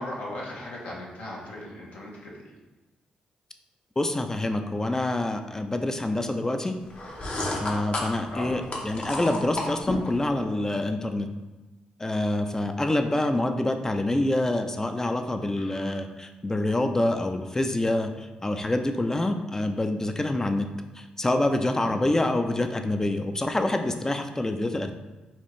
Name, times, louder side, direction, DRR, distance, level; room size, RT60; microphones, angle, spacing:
voice 1, 0.0-2.5 8.3-8.6 15.6-16.0 21.8-22.1, left 1 dB, 70° left, -3 dB, 1.0 m, -38 dB
voice 2, 4.0-6.8 7.6-11.3 12.0-20.7 20.9-24.9, left 1 dB, 20° left, 7 dB, 0.4 m, -26 dB
sound 1, 6.9-10.2, left 1 dB, 45° left, 0.8 m, -32 dB
4.3 x 2.4 x 3.1 m, 1.2 s
supercardioid pair, 55°, 3 cm